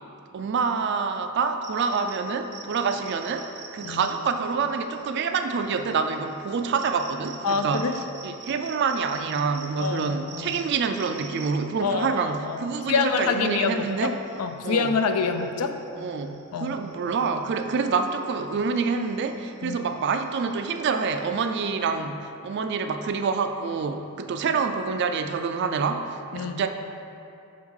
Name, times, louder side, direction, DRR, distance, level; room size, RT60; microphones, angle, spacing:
voice 1, 0.3-7.9 8.2-14.1 14.6-14.9 16.0-26.7, right 5 dB, 50° right, 7 dB, 0.3 m, -27 dB
sound 1, 1.6-21.5, right 6 dB, 80° right, 0.8 m, -47 dB
voice 2, 3.8-4.1 7.4-8.0 9.8-10.6 11.8-12.1 12.5-15.7 16.5-16.8 19.6-19.8 26.3-26.6, left 5 dB, 85° left, 7 dB, 0.4 m, -26 dB
6.0 x 4.7 x 3.6 m, 2.7 s
head